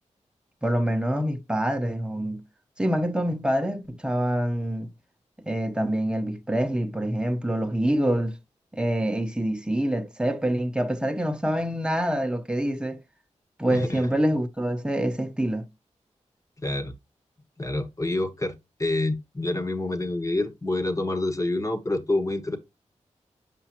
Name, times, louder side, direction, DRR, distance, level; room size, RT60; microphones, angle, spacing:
voice 1, 0.6-2.4 2.8-4.9 5.5-8.4 8.7-13.0 13.6-15.7, right 1 dB, 5° right, 1.0 m, -26 dB
voice 2, 13.7-14.1 16.6-16.9 17.6-18.5 18.8-22.6, left 2 dB, 25° left, 1.4 m, -27 dB
7.0 x 5.3 x 2.9 m
cardioid pair, 45°, 13 cm